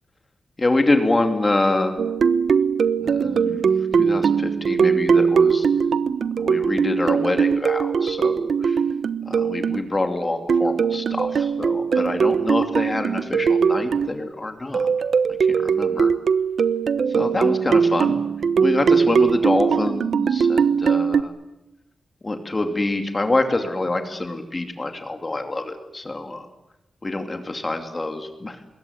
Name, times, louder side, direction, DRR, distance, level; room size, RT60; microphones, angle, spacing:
voice 1, 0.6-1.9 3.0-3.7 4.0-5.7 6.4-8.8 9.3-14.8 15.5-16.1 17.1-18.2 18.6-21.3 22.2-26.5 27.0-28.6, left 2 dB, 25° left, 5 dB, 2.6 m, -25 dB
sound 1, 2.0-9.8 10.5-14.2 14.7-21.2, right 6 dB, 75° right, 1.0 m, -20 dB
25.5 x 21.5 x 9.5 m, 0.93 s
wide cardioid pair, 140°, 0 cm